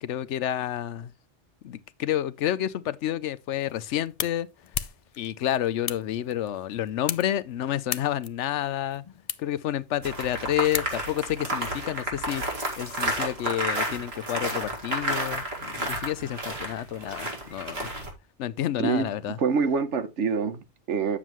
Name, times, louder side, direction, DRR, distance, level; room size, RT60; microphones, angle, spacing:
voice 1, 0.0-1.1 1.6-4.5 5.2-9.1 9.4-12.4 12.8-18.0 18.4-19.4, left 11 dB, 85° left, 0.9 m, -29 dB
sound 1, 3.5-11.3, left 8 dB, 50° left, 0.4 m, -38 dB
sound 2, 10.0-18.1, right 1 dB, 60° right, 2.3 m, -31 dB
voice 2, 19.4-21.2, right 5 dB, 90° right, 1.3 m, -26 dB
9.2 x 7.2 x 3.0 m
omnidirectional pair, 1.2 m